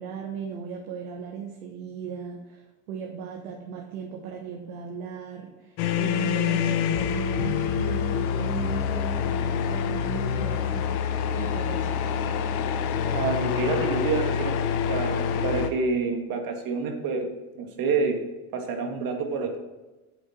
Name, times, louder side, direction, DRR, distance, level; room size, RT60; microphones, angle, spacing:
voice 1, 0.0-10.9 11.4-12.0, right 7 dB, 90° right, 0 dB, 1.4 m, -37 dB
sound 1, 5.8-15.7, left 7 dB, 85° left, 0.9 m, -26 dB
voice 2, 13.1-17.3 17.6-18.2 18.5-19.6, right 4 dB, 55° right, 4 dB, 1.9 m, -28 dB
8.8 x 7.3 x 4.5 m, 1.1 s
supercardioid pair, 95°, 42 cm